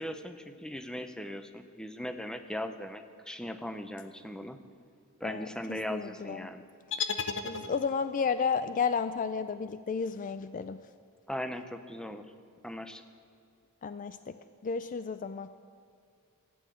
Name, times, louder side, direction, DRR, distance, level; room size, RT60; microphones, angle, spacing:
voice 1, 0.0-4.6 5.2-6.6 11.3-12.3 12.6-13.0, left 1 dB, 5° left, 8 dB, 0.7 m, -39 dB
voice 2, 5.2-6.5 7.4-10.8 13.8-14.4 14.6-15.5, left 5 dB, 35° left, 12 dB, 0.4 m, -32 dB
sound 1, 6.9-8.2, left 5 dB, 60° left, 0.8 m, -34 dB
15.5 x 8.6 x 9.2 m, 2.3 s
head